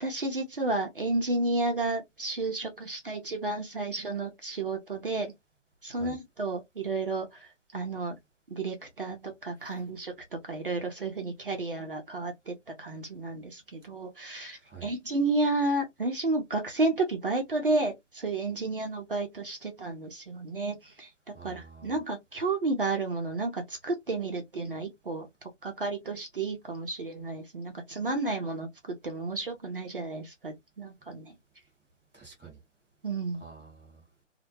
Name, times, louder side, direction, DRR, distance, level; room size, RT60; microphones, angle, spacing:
voice 1, 0.0-5.3 5.8-8.1 8.5-10.1 10.4-21.1 21.4-25.3 25.6-31.3 33.0-33.4, right 2 dB, 50° right, 0.5 m, -32 dB
voice 2, 21.3-21.9 32.1-32.6 33.4-34.0, right 5 dB, 5° left, 0.9 m, -48 dB
2.1 x 2.0 x 2.9 m
figure-of-eight pair, 165°, 37 cm